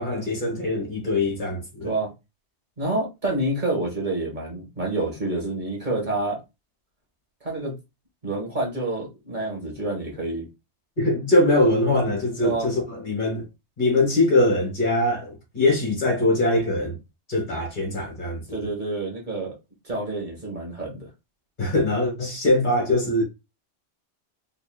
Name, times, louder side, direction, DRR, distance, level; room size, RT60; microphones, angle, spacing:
voice 1, 0.0-1.9 11.0-13.4 13.8-17.0 17.3-18.6 21.6-23.2, left 2 dB, 45° left, 1.5 m, -22 dB
voice 2, 2.8-6.4 7.4-7.7 8.2-10.5 12.4-12.7 18.5-19.5 19.8-21.1, right 2 dB, 45° right, 1.6 m, -28 dB
3.7 x 3.7 x 2.2 m
omnidirectional pair, 1.2 m